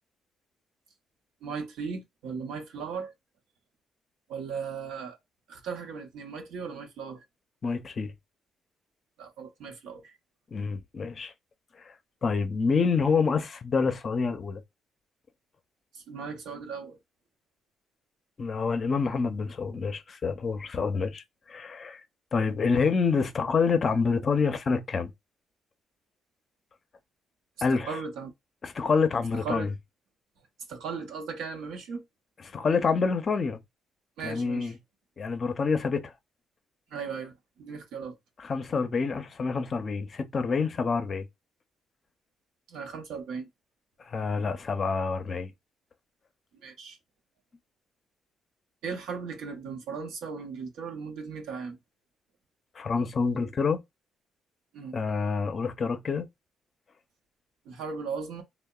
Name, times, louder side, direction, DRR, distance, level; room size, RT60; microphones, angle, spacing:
voice 1, 1.4-3.1 4.3-5.2 5.5-7.2 9.2-10.2 15.9-17.0 27.7-28.3 29.3-29.7 30.7-32.0 34.2-34.7 36.9-38.1 42.7-43.5 46.5-47.0 48.8-51.8 54.7-55.0 57.6-58.4, right 5 dB, 85° right, 0.7 m, -37 dB
voice 2, 7.6-8.1 10.5-11.3 11.8-11.9 12.2-14.6 18.4-22.0 22.3-25.1 27.6-28.0 28.6-29.7 32.5-33.6 34.2-34.8 35.2-36.1 38.4-41.3 44.0-45.5 52.8-53.8 54.9-56.3, left 5 dB, 45° left, 0.5 m, -27 dB
2.8 x 2.0 x 2.2 m
cardioid pair, 90°, 0 cm